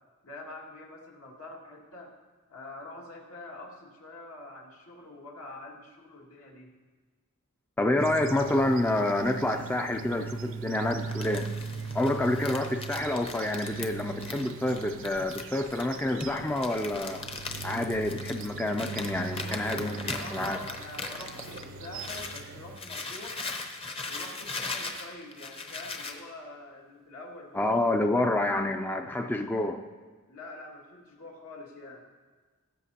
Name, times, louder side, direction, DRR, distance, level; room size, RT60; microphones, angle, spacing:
voice 1, 0.2-2.1 2.5-6.8 19.4-23.4 24.1-28.5 30.3-32.1, left 2 dB, 75° left, -2 dB, 2.1 m, -46 dB
voice 2, 7.8-11.5 11.9-17.2 17.6-20.6 27.5-29.8, left 1 dB, 10° left, 5 dB, 0.3 m, -28 dB
sound 1, 8.0-22.8, right 5 dB, 60° right, 0.5 m, -40 dB
Crumpling crinkling, 10.9-22.4 22.8-26.2, left 3 dB, 25° left, 0.7 m, -39 dB
19.5 x 8.2 x 2.8 m, 1.4 s
head